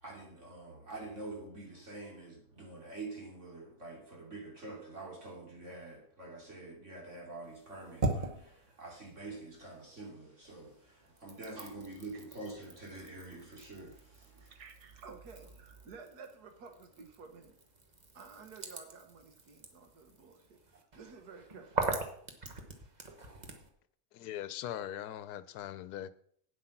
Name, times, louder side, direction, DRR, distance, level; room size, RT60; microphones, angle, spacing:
voice 1, 0.0-14.5, right 2 dB, 50° right, 3.6 m, -46 dB
sound 1, 7.4-10.1 10.4-23.7, right 3 dB, 30° right, 1.2 m, -42 dB
voice 2, 14.4-17.5 18.1-20.6 20.9-21.7, right 5 dB, 85° right, 1.8 m, -52 dB
voice 3, 24.1-26.1, left 11 dB, 80° left, 1.2 m, -41 dB
9.0 x 7.7 x 5.9 m
omnidirectional pair, 1.6 m